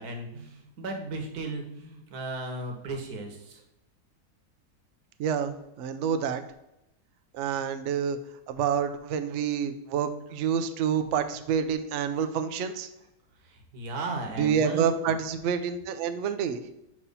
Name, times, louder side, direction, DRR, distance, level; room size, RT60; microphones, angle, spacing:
voice 1, 0.0-3.6 13.4-15.1, right 2 dB, 65° right, 2 dB, 1.5 m, -36 dB
voice 2, 5.2-6.4 7.3-8.2 8.5-12.9 14.4-16.6, right 7 dB, 90° right, 9 dB, 0.6 m, -28 dB
6.2 x 2.9 x 5.3 m, 0.88 s
omnidirectional pair, 1.8 m